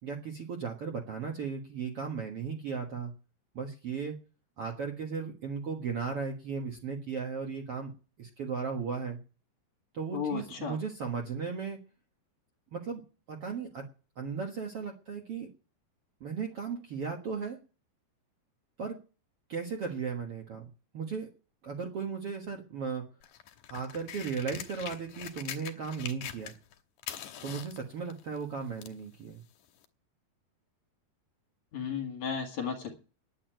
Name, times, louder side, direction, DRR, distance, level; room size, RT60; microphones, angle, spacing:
voice 1, 0.0-3.1 3.5-4.2 4.6-7.9 8.2-9.2 9.9-11.8 12.7-13.0 13.3-13.8 14.2-15.5 16.2-17.6 18.8-19.0 19.5-20.7 20.9-21.3 21.6-23.1 23.7-26.5 27.4-29.4, right 5 dB, 50° right, 1 dB, 1.9 m, -36 dB
voice 2, 10.1-10.8 31.7-32.9, left 6 dB, 50° left, 4 dB, 3.0 m, -34 dB
sound 1, 23.2-26.7 27.0-29.0 29.8-29.9, left 10 dB, 65° left, 2.4 m, -43 dB
10.0 x 9.3 x 9.1 m, 0.35 s
omnidirectional pair, 4.4 m